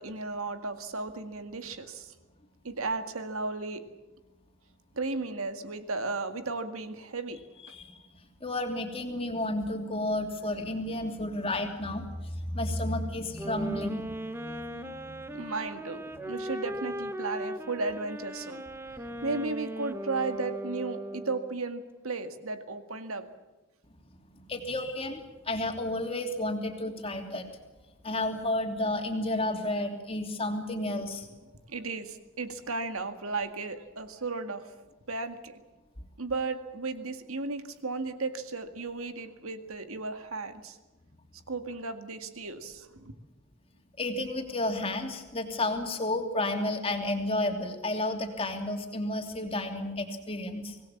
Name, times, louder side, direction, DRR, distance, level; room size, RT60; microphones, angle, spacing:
voice 1, 0.0-2.1 2.6-3.9 5.0-7.4 15.3-18.6 19.2-23.3 31.7-34.7 35.1-35.6 36.2-40.8 41.5-43.1, right 3 dB, 80° right, 9 dB, 2.0 m, -35 dB
voice 2, 7.7-15.5 16.1-16.5 18.9-19.2 24.3-27.5 28.0-31.3 44.0-50.8, left 1 dB, 25° left, 4 dB, 2.9 m, -32 dB
sound 1, 13.4-21.6, right 1 dB, 10° right, 1.0 m, -38 dB
25.5 x 18.5 x 7.3 m, 1.2 s
head